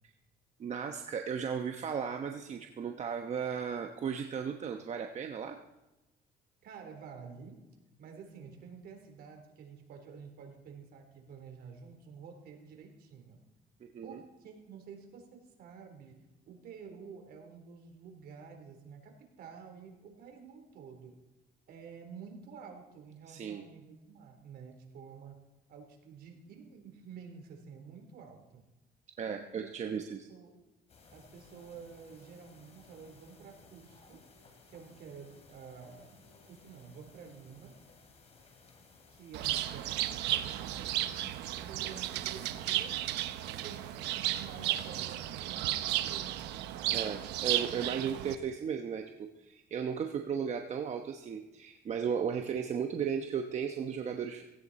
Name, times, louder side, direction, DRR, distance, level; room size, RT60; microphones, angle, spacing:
voice 1, 0.6-5.6 13.8-14.2 23.3-23.6 29.2-30.3 46.9-54.4, right 7 dB, 45° right, 4 dB, 1.1 m, -35 dB
voice 2, 6.6-7.6 8.0-13.4 14.0-16.2 16.5-21.2 21.7-25.4 25.7-28.6 29.2-30.6 31.1-34.2 34.7-37.8 39.1-41.1 41.4-43.0 43.4-46.4, right 6 dB, 65° right, 4 dB, 3.8 m, -50 dB
sound 1, 30.9-44.9, left 4 dB, 40° left, 3.4 m, -59 dB
Bird, 39.3-48.3, right 13 dB, 85° right, 0.9 m, -34 dB
17.5 x 17.0 x 4.3 m, 0.99 s
cardioid pair, 110°, 17 cm